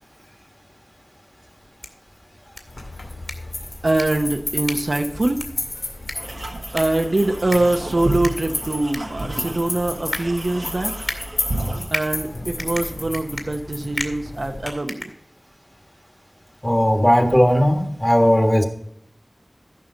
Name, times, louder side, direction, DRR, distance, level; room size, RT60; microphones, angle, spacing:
sound 1, 1.6-15.7, left 1 dB, 30° left, 2.2 m, -36 dB
sound 2, 2.7-14.7, left 1 dB, 80° left, 2.5 m, -33 dB
voice 1, 3.8-5.4 6.7-10.9 11.9-15.1, right 2 dB, 60° right, 4 dB, 0.9 m, -23 dB
sound 3, 6.1-11.9, right 1 dB, 80° right, 1.5 m, -31 dB
voice 2, 16.6-18.6, equal, 15° left, 4 dB, 1.6 m, -17 dB
14.0 x 5.9 x 3.9 m, 0.68 s
wide cardioid pair, 45°, 0 cm